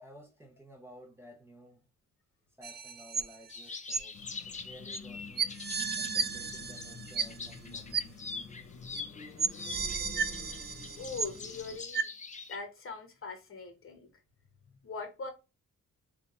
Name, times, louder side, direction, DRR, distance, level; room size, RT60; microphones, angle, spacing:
voice 1, 0.0-1.8 2.6-5.5 6.0-8.2, equal, 10° right, 0.8 m, -54 dB
sound 1, 2.6-3.6 3.9-4.0 4.9-5.0 5.4-7.6 7.9-8.0 8.9-9.0 9.4-11.6 11.9-12.0, right 5 dB, 35° right, 0.4 m, -33 dB
sound 2, 3.5-6.1 6.5-12.6, left 4 dB, 25° left, 0.6 m, -44 dB
sound 3, 4.1-11.8, left 5 dB, 70° left, 0.9 m, -49 dB
voice 2, 11.0-12.1 12.5-14.1 14.8-15.3, left 4 dB, 45° left, 1.2 m, -41 dB
3.4 x 2.4 x 4.2 m
wide cardioid pair, 130°, 30 cm